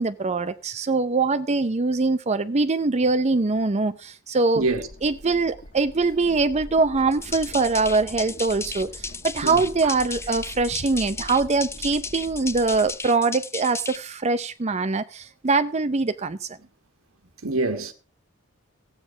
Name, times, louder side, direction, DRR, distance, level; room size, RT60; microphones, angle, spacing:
voice 1, 0.0-4.7 5.0-16.6, right 3 dB, 30° right, 0.6 m, -23 dB
voice 2, 4.5-4.9 9.4-9.6 17.4-17.9, right 2 dB, 85° right, 1.5 m, -25 dB
sound 1, 4.6-12.9, equal, 40° left, 1.7 m, -43 dB
sound 2, 7.1-14.0, left 4 dB, 15° left, 0.6 m, -35 dB
15.0 x 8.9 x 5.5 m
head